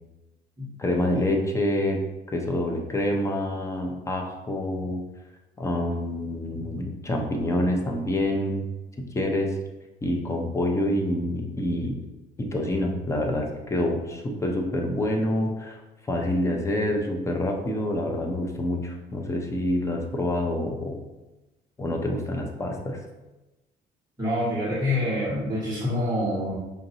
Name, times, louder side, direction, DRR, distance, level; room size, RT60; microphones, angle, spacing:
voice 1, 0.8-2.0 2.3-5.0 5.6-8.7 9.0-9.6 10.0-12.0 12.4-15.8 16.1-21.0 21.8-23.0, left 1 dB, 15° left, 1 dB, 0.6 m, -27 dB
voice 2, 24.2-26.5, left 1 dB, 20° right, -10 dB, 1.2 m, -26 dB
5.0 x 2.6 x 2.8 m, 1.1 s
cardioid pair, 110°, 17 cm